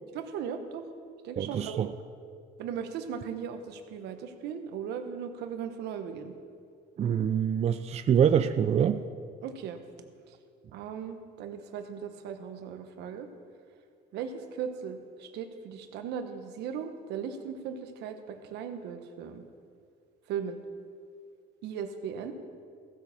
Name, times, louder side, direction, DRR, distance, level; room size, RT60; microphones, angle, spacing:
voice 1, 0.1-0.8 1.2-1.8 2.6-6.3 9.4-9.8 10.7-13.3 14.1-19.4 20.3-20.6 21.6-22.3, right 7 dB, 85° right, 7 dB, 1.2 m, -37 dB
voice 2, 1.4-1.9 7.0-9.0, right 8 dB, 40° right, 10 dB, 0.4 m, -25 dB
15.5 x 6.6 x 7.2 m, 2.2 s
cardioid pair, 110°, 17 cm